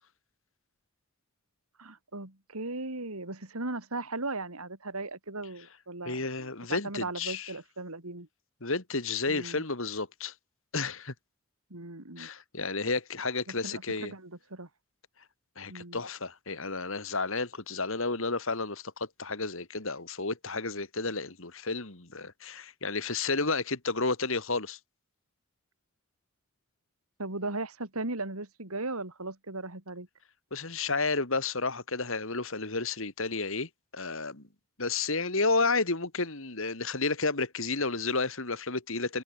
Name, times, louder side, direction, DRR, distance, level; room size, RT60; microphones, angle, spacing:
voice 1, 1.8-6.2 6.7-8.3 9.3-9.6 11.7-12.3 13.5-14.7 15.7-16.0 27.2-30.1, right 2 dB, 80° right, 3.7 m, -37 dB
voice 2, 6.1-7.5 8.6-10.3 10.7-11.1 12.2-14.1 15.6-24.8 30.5-34.5 34.8-39.2, left 3 dB, 65° left, 2.6 m, -31 dB
head